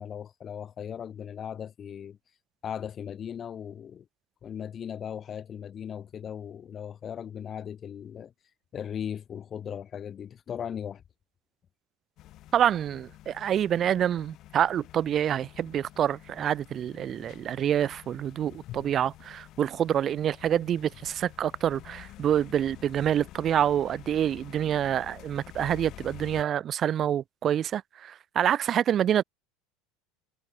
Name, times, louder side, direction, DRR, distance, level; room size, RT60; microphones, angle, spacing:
voice 1, 0.0-2.2 2.6-4.1 4.4-8.3 8.7-11.0, left 8 dB, 35° left, 1.0 m, -38 dB
sound 1, 12.2-26.4, left 15 dB, 50° left, 3.8 m, -48 dB
voice 2, 12.5-29.2, right 10 dB, 35° right, 0.7 m, -27 dB
supercardioid pair, 120°, 0 cm